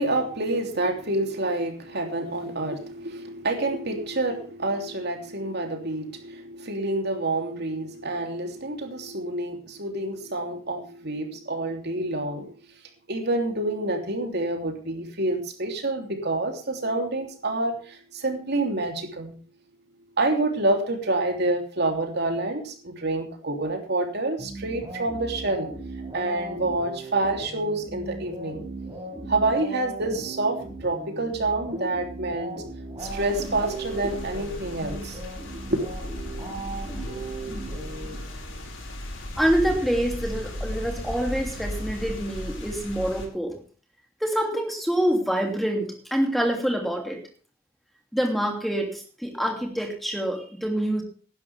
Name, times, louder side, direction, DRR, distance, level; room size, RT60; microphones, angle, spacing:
voice 1, 0.0-12.5 13.1-19.3 20.2-25.7 26.1-28.6 29.3-32.5 33.0-35.2 35.5-35.8, right 2 dB, 50° right, 4 dB, 3.2 m, -28 dB
sound 1, 24.4-38.7, right 2 dB, 20° right, 6.4 m, -38 dB
sound 2, 33.0-43.3, left 1 dB, 65° left, 5.4 m, -36 dB
voice 2, 39.4-43.6 44.2-47.2 48.1-51.0, equal, ahead, 2 dB, 2.9 m, -26 dB
18.0 x 12.0 x 3.5 m, 0.40 s
head